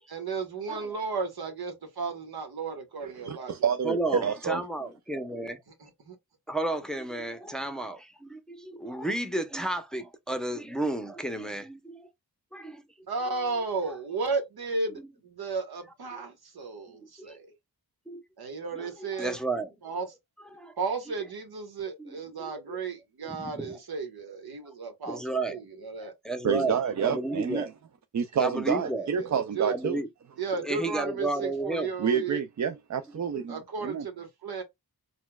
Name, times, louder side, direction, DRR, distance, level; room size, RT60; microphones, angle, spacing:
voice 1, 0.1-3.5 5.8-6.1 13.1-17.5 18.4-19.4 19.8-20.1 20.8-26.1 29.2-29.7 30.4-32.4 33.5-34.6, right 4 dB, 75° right, 1.2 m, -34 dB
voice 2, 3.0-4.6 26.4-27.7 28.1-30.0 32.0-34.1, right 7 dB, 50° right, 0.5 m, -28 dB
voice 3, 3.8-5.6 6.5-12.1 12.5-12.8 13.3-13.4 17.0-17.4 18.1-18.2 18.7-19.7 20.5-20.7 22.0-22.8 23.2-23.8 25.1-27.7 28.4-29.1 29.7-30.1 30.5-31.9, right 2 dB, ahead, 0.7 m, -33 dB
4.2 x 2.3 x 2.2 m
cardioid pair, 60°, 38 cm